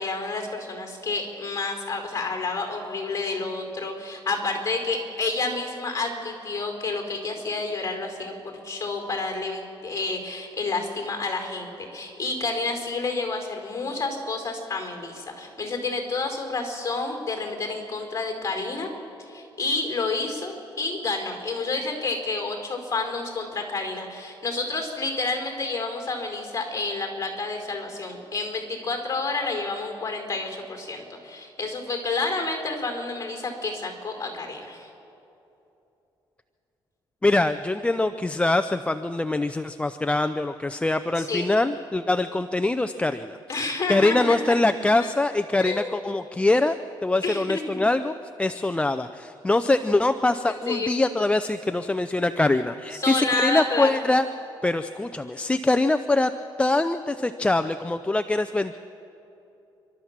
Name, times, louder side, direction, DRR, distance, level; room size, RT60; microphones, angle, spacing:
voice 1, 0.0-18.9 19.3-34.9 41.2-41.5 43.5-44.6 45.0-45.1 45.6-46.0 47.2-47.8 50.7-50.9 52.9-54.0, left 3 dB, 35° left, 3 dB, 4.4 m, -29 dB
voice 2, 37.2-43.4 43.9-46.8 47.0-48.1 48.4-54.3 54.6-56.3 56.6-58.7, left 2 dB, 15° left, 9 dB, 0.5 m, -23 dB
29.5 x 12.5 x 7.4 m, 2.9 s
cardioid pair, 115°, 9 cm